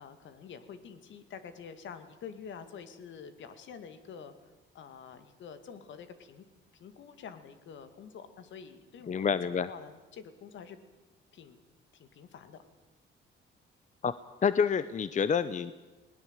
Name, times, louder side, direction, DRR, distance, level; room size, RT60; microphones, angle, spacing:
voice 1, 0.0-4.3 4.7-6.4 6.7-9.4 9.7-10.8 11.3-11.6 11.9-12.6, left 7 dB, 70° left, 11 dB, 2.1 m, -47 dB
voice 2, 9.1-9.7 14.0-15.7, left 6 dB, 40° left, 15 dB, 0.7 m, -28 dB
19.5 x 19.0 x 8.1 m, 1.2 s
cardioid pair, 90°, 20 cm